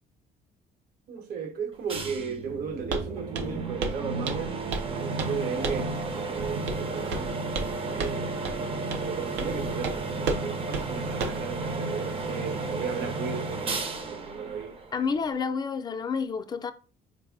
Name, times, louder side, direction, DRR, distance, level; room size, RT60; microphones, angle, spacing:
voice 1, 1.1-4.6 5.0-7.3 7.9-8.4 9.0-13.7 14.1-14.8, right 6 dB, 65° right, 0.9 m, -35 dB
sound 1, 1.9-15.4, right 3 dB, 35° right, 0.5 m, -33 dB
Walk footsteps, 2.9-3.1 3.3-3.6 3.8-4.0 4.3-4.9 5.2-5.4 5.6-5.9 6.7-6.8 7.1-7.7 8.0-8.2 8.4-8.6 8.9-9.1 9.4-9.5 9.8-10.0 10.3-10.4 10.7-10.9 11.2-11.4, right 3 dB, 90° right, 0.6 m, -31 dB
voice 2, 14.9-16.7, left 5 dB, 25° left, 0.4 m, -29 dB
4.2 x 2.0 x 3.5 m
cardioid pair, 110°, 17 cm